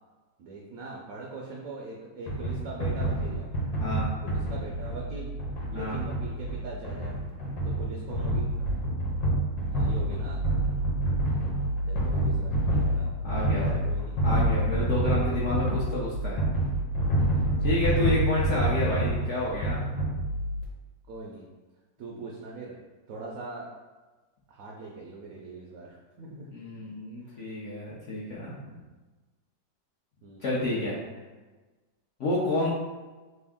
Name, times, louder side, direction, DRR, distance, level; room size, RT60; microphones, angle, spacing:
voice 1, 0.4-3.5 4.2-5.3 5.7-7.2 7.6-8.5 9.7-10.4 11.9-13.1 13.6-14.1 15.1-15.4 17.3-17.9 21.1-21.5 22.0-22.8 23.1-23.7 24.5-26.5 26.8-26.9 27.2-27.5 30.2-30.4, right 3 dB, 75° right, -2 dB, 0.8 m, -41 dB
sound 1, 2.3-20.6, right 1 dB, 90° left, 1.5 m, -28 dB
voice 2, 3.8-4.1 5.7-6.0 13.2-14.0 14.2-16.4 17.6-19.8 26.5-28.8 30.4-31.0 32.2-32.7, left 2 dB, 70° left, -7 dB, 0.7 m, -30 dB
3.4 x 2.6 x 3.5 m, 1.2 s
omnidirectional pair, 2.0 m